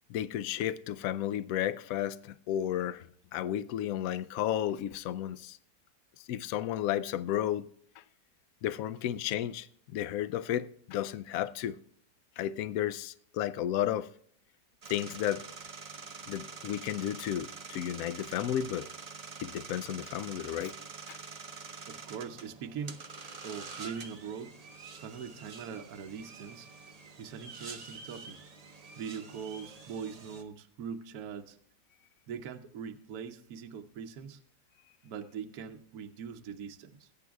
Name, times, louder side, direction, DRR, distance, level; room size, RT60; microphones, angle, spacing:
voice 1, 0.1-3.1 3.3-5.6 6.3-7.7 8.6-9.7 9.9-11.8 12.4-14.1 14.9-15.4 16.3-18.9 19.4-20.7 21.1-21.2, left 11 dB, 70° left, 0.8 m, -33 dB
sound 1, 14.8-30.4, right 4 dB, 40° right, 0.5 m, -46 dB
voice 2, 21.9-23.0 23.4-24.6 25.0-26.7 27.2-28.4 29.0-31.6 32.3-34.4 35.0-37.1, right 7 dB, 65° right, 1.1 m, -42 dB
20.5 x 9.4 x 2.3 m
omnidirectional pair, 1.9 m